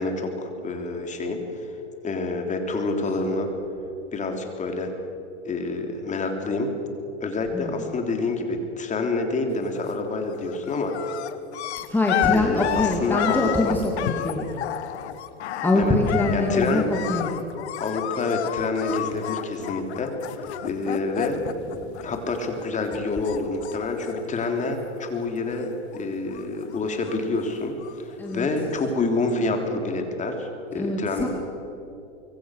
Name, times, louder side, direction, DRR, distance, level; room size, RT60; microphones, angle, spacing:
voice 1, 0.0-1.7 2.0-3.5 4.1-4.9 5.4-6.7 7.2-11.2 12.3-13.8 15.7-15.9 16.3-16.9 17.8-21.4 22.0-31.3, left 3 dB, 20° left, 4 dB, 3.4 m, -27 dB
voice 2, 7.5-7.9 11.9-14.5 15.6-17.3 21.8-22.0 28.2-28.5 30.8-31.3, left 2 dB, 5° left, -1 dB, 2.4 m, -24 dB
sound 1, 9.6-10.1 10.3-22.6 22.9-25.1 25.3-26.0 26.3-28.1 28.8-28.9, left 12 dB, 70° left, 1.5 m, -31 dB
24.0 x 24.0 x 6.5 m, 2.9 s
hypercardioid pair, 120°, 35 cm